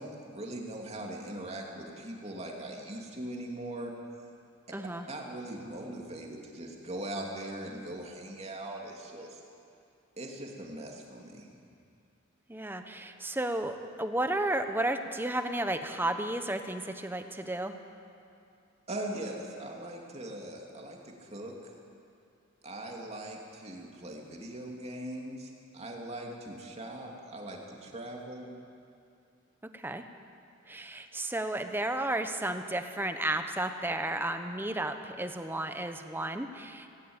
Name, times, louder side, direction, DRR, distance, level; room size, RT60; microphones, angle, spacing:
voice 1, 0.0-3.9 5.1-9.4 10.2-11.5 18.9-21.5 22.6-28.5, right 1 dB, 30° right, 0 dB, 2.6 m, -40 dB
voice 2, 4.7-5.1 12.5-17.7 29.7-30.0 30.7-36.9, right 1 dB, 10° right, 7 dB, 1.0 m, -33 dB
18.0 x 17.5 x 8.8 m, 2.5 s
head